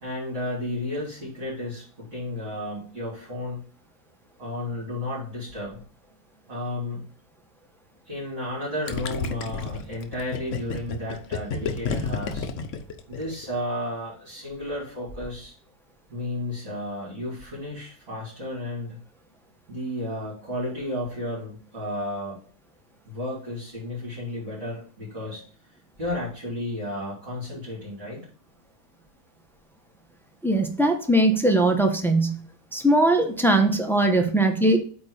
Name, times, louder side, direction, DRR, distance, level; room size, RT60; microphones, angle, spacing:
voice 1, 0.0-3.6 4.4-5.8 6.5-7.0 8.0-12.5 13.1-15.5 16.1-19.0 19.7-22.4 23.1-25.4 26.0-28.2, left 1 dB, 35° right, -8 dB, 3.6 m, -33 dB
Gurgling, 8.9-13.6, left 5 dB, 55° left, 0.9 m, -31 dB
voice 2, 30.4-32.4 32.7-34.8, right 1 dB, ahead, 4 dB, 0.7 m, -20 dB
8.5 x 3.5 x 5.0 m, 0.42 s
omnidirectional pair, 1.8 m